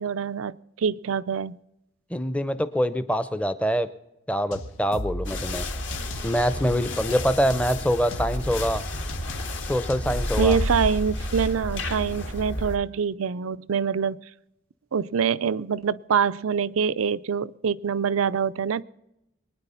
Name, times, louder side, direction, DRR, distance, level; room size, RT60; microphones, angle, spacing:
voice 1, 0.0-1.6 10.4-14.2 14.9-18.8, right 6 dB, 85° right, 17 dB, 0.5 m, -25 dB
voice 2, 2.1-3.9 4.3-5.6 6.2-8.8 9.7-10.6, equal, 5° left, 13 dB, 0.6 m, -24 dB
sound 1, 4.5-6.5 6.9-10.9, equal, 85° left, 1.3 m, -36 dB
sound 2, 5.2-12.8, left 1 dB, 60° left, 1.8 m, -31 dB
23.5 x 9.8 x 5.6 m, 0.89 s
head